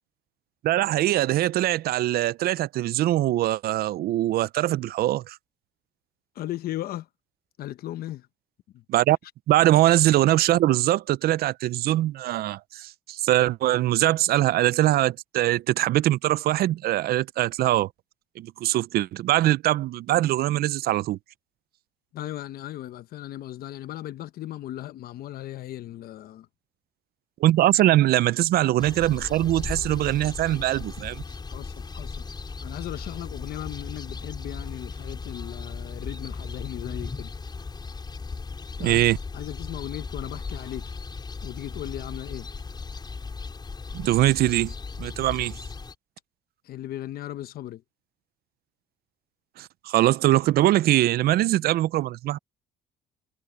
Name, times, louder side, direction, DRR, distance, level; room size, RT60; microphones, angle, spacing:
voice 1, 0.6-5.4 8.9-9.2 9.5-17.9 18.4-21.2 27.4-31.2 38.8-39.2 43.9-44.7 45.0-45.6 49.6-52.4, right 14 dB, 65° right, 0.6 m, -22 dB
voice 2, 6.3-7.1 7.6-8.3 8.7-8.8 22.1-26.5 27.7-27.8 31.5-37.3 38.8-40.9 41.4-42.5 46.6-47.8, left 13 dB, 65° left, 0.9 m, -37 dB
sound 1, 28.8-45.9, left 4 dB, 25° left, 5.2 m, -37 dB
cardioid pair, 110°, 17 cm